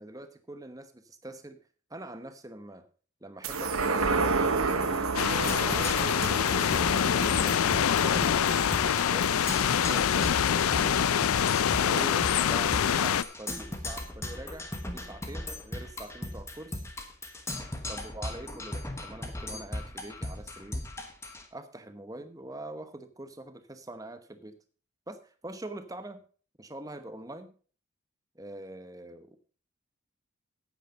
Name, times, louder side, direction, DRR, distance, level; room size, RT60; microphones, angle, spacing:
voice 1, 0.0-1.6 1.9-2.9 3.2-4.5 5.2-7.7 8.0-11.0 11.8-16.8 17.9-20.9 21.5-24.6 25.1-26.2 26.6-27.5 28.3-29.4, right 1 dB, 15° right, 9 dB, 1.0 m, -43 dB
sound 1, 3.4-10.2 10.6-10.7, right 4 dB, 85° right, 1.1 m, -31 dB
sound 2, 5.1-13.2, left 8 dB, 85° left, 0.4 m, -25 dB
Percussion, 5.5-21.4, left 1 dB, 15° left, 1.2 m, -38 dB
9.0 x 8.5 x 5.1 m, 0.40 s
head